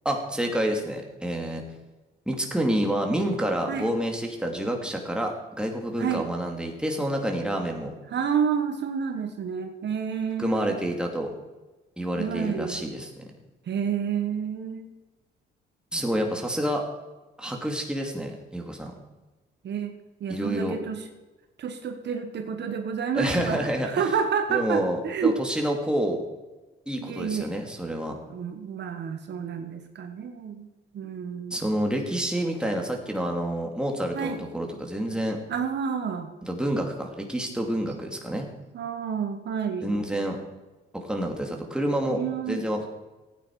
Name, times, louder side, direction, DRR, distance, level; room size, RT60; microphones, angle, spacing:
voice 1, 0.0-1.6 2.3-7.9 10.4-11.3 12.0-13.3 15.9-16.8 17.4-18.9 20.3-20.8 23.1-24.0 24.5-26.2 26.9-28.1 31.5-35.4 36.4-38.5 39.8-40.4 40.9-42.8, right 1 dB, 5° right, 1 dB, 2.6 m, -28 dB
voice 2, 8.1-10.9 12.2-12.8 13.7-14.9 19.6-19.9 20.2-21.0 21.6-25.3 27.0-27.5 28.3-30.7 30.9-31.6 34.1-34.4 35.5-36.3 38.7-39.9 42.1-42.7, right 7 dB, 60° right, 6 dB, 1.3 m, -29 dB
15.5 x 9.2 x 4.8 m, 1.2 s
cardioid pair, 90°, 20 cm